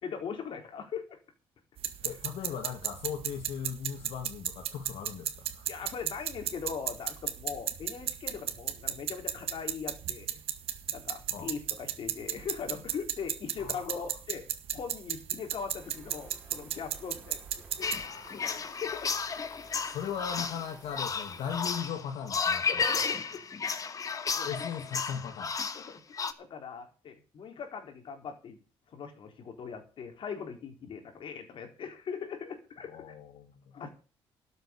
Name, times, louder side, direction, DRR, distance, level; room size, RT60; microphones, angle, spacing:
voice 1, 0.0-1.2 5.7-10.4 10.9-14.4 14.7-17.4 17.8-17.9 18.3-19.2 22.7-23.4 24.3-24.5 25.7-28.6 28.9-32.9 33.7-33.9, left 6 dB, 55° left, 5 dB, 3.9 m, -40 dB
sound 1, 1.8-18.1, right 10 dB, 70° right, 1.8 m, -36 dB
voice 2, 2.0-5.7 11.3-11.5 13.6-14.1 17.8-18.7 19.8-22.7 24.4-25.5 32.9-33.7, left 8 dB, 85° left, 5 dB, 2.0 m, -38 dB
sound 2, 15.8-21.8, right 3 dB, 15° right, 5.0 m, -55 dB
sound 3, 17.8-26.3, left 5 dB, 35° left, 1.3 m, -33 dB
12.5 x 7.8 x 8.3 m, 0.35 s
cardioid pair, 135°, 10 cm